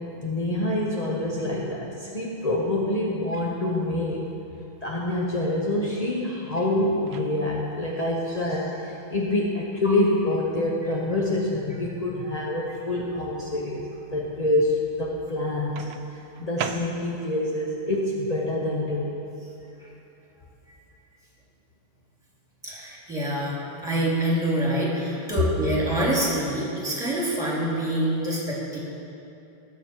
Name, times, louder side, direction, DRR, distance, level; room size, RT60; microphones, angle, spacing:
voice 1, 0.0-4.3 4.8-13.8 14.1-19.3, left 1 dB, 35° left, -3 dB, 0.6 m, -26 dB
Microwave oven, 7.0-7.7 9.7-9.9 15.8-17.4, right 8 dB, 85° right, 1.5 m, -37 dB
voice 2, 22.6-28.8, right 1 dB, ahead, -7 dB, 3.1 m, -26 dB
19.5 x 7.1 x 4.6 m, 2.8 s
omnidirectional pair, 2.2 m